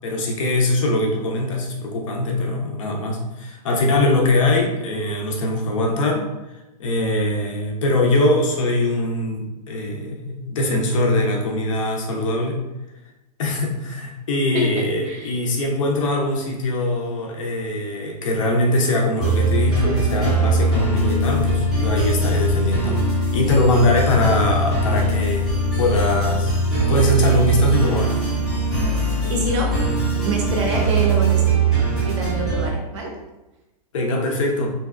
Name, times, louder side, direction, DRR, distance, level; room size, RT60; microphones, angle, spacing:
voice 1, 0.0-6.2 6.8-12.6 13.4-26.5 26.9-28.2 33.9-34.7, left 2 dB, 50° left, 0 dB, 0.5 m, -22 dB
sound 1, 19.2-32.7, right 2 dB, ahead, 0.5 m, -21 dB
voice 2, 29.3-29.7 30.2-31.6 32.0-33.1, right 2 dB, 45° right, -1 dB, 0.6 m, -25 dB
2.6 x 2.2 x 2.3 m, 1.0 s
supercardioid pair, 170°, 21 cm